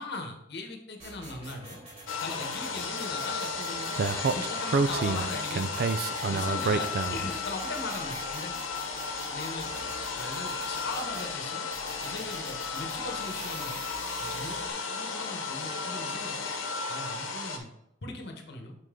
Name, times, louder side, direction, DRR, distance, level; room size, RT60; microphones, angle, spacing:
voice 1, 0.0-1.8 2.2-3.9 4.3-5.7 6.3-8.6 9.3-11.7 12.0-13.8 14.2-16.4 16.9-17.7 18.0-18.8, left 2 dB, 60° left, 4 dB, 1.2 m, -39 dB
sound 1, 1.0-4.4 4.8-11.3 11.7-14.7, right 1 dB, 35° right, 2.7 m, -46 dB
sound 2, 2.1-17.6, left 4 dB, 90° left, 1.0 m, -34 dB
Speech, 4.0-7.4, right 4 dB, 55° right, 0.4 m, -28 dB
6.2 x 5.4 x 3.7 m, 0.80 s
head